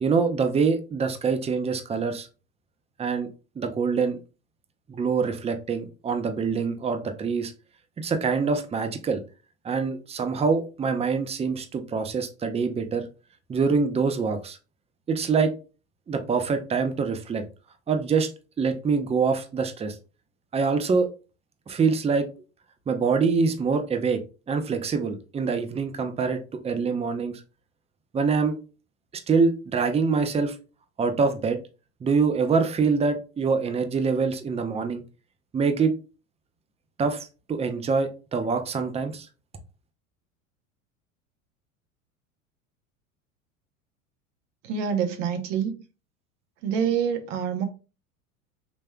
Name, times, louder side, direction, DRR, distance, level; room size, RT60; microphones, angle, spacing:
voice 1, 0.0-2.3 3.0-3.3 3.6-4.2 4.9-7.5 8.0-9.2 9.6-13.1 13.5-14.6 15.1-15.5 16.1-17.4 17.9-18.3 18.6-19.9 20.5-21.1 21.7-22.3 22.9-24.2 24.5-27.3 28.1-28.6 29.3-30.6 31.0-31.6 32.0-35.0 35.5-35.9 37.0-39.3, right 5 dB, 15° right, 0.6 m, -25 dB
voice 2, 44.6-45.8 46.6-47.6, right 7 dB, 60° right, 1.1 m, -26 dB
5.2 x 3.2 x 2.3 m
hypercardioid pair, 85°, 41 cm